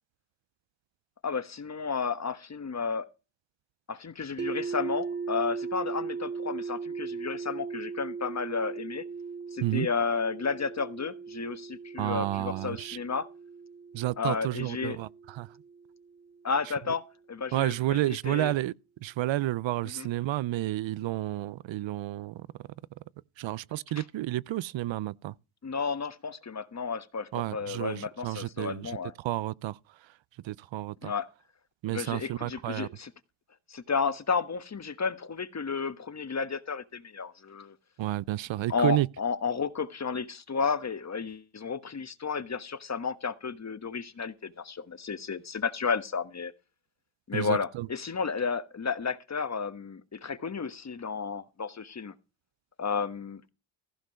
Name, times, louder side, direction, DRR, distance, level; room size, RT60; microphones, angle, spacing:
voice 1, 1.2-3.1 3.9-9.0 9.5-13.3 14.2-15.0 16.4-17.0 17.3-18.5 19.8-20.1 24.0-24.1 25.6-29.1 31.0-31.3 31.9-33.1 33.7-37.7 38.7-46.5 47.3-52.1 52.8-53.4, left 5 dB, 35° left, 1.3 m, -32 dB
sound 1, 4.4-16.3, right 5 dB, 25° right, 0.5 m, -38 dB
voice 2, 12.0-13.0 13.9-15.5 17.5-18.7 19.0-22.5 23.4-25.3 27.3-28.9 29.2-29.8 30.4-31.1 31.8-32.9 38.0-39.1 47.3-47.9, right 15 dB, 70° right, 0.6 m, -31 dB
15.5 x 5.3 x 6.2 m
cardioid pair, 75°, 47 cm